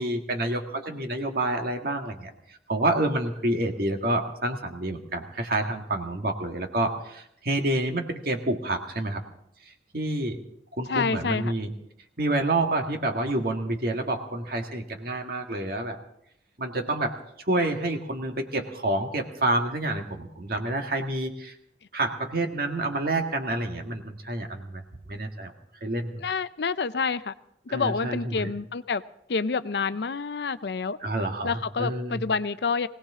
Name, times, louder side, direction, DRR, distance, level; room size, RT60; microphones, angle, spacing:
voice 1, 0.0-9.2 9.6-10.4 10.7-11.7 12.2-16.0 16.6-21.6 21.9-24.8 25.1-25.5 25.8-26.2 27.7-28.5 31.0-32.2, right 2 dB, 55° right, 3 dB, 1.8 m, -28 dB
voice 2, 10.9-11.5 26.2-27.3 27.7-29.0 29.3-31.0 31.4-32.9, left 5 dB, 70° left, 14 dB, 0.5 m, -28 dB
20.5 x 18.0 x 3.7 m, 0.76 s
head